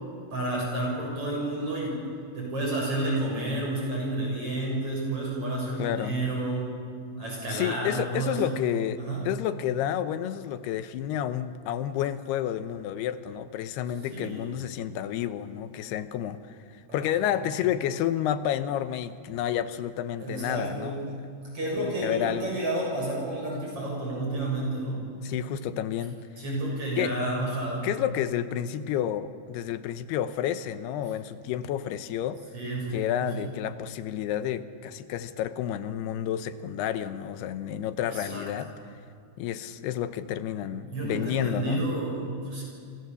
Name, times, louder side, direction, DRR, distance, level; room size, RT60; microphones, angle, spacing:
voice 1, 0.3-2.0 2.3-6.7 7.2-8.6 9.0-9.2 14.1-14.5 16.9-17.0 20.2-21.0 21.5-25.0 26.4-27.9 32.5-33.3 38.1-38.4 40.6-42.6, right 2 dB, 35° right, -3 dB, 8.1 m, -30 dB
voice 2, 5.8-6.2 7.5-21.0 21.8-22.6 25.2-26.2 27.0-27.1 27.8-32.4 32.9-38.7 39.4-41.8, left 11 dB, 80° left, 11 dB, 2.8 m, -30 dB
28.5 x 25.0 x 7.0 m, 2.2 s
omnidirectional pair, 4.7 m